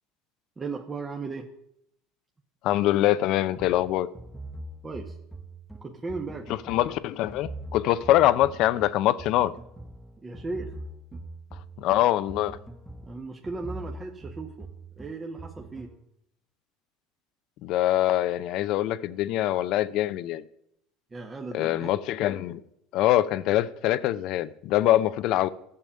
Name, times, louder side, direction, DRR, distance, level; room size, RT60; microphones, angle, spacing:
voice 1, 0.6-1.5 4.8-5.2 5.8-6.5 10.2-10.8 11.1-11.2 13.0-14.7 15.0-15.9 21.1-22.0, right 3 dB, 20° right, 1.5 m, -36 dB
voice 2, 2.6-4.1 6.5-9.5 11.8-12.6 17.6-20.4 21.5-22.6 22.9-25.5, left 14 dB, 60° left, 0.7 m, -24 dB
sound 1, 3.6-16.0, right 2 dB, 5° right, 1.4 m, -43 dB
12.5 x 7.0 x 8.8 m
hypercardioid pair, 85°, 0 cm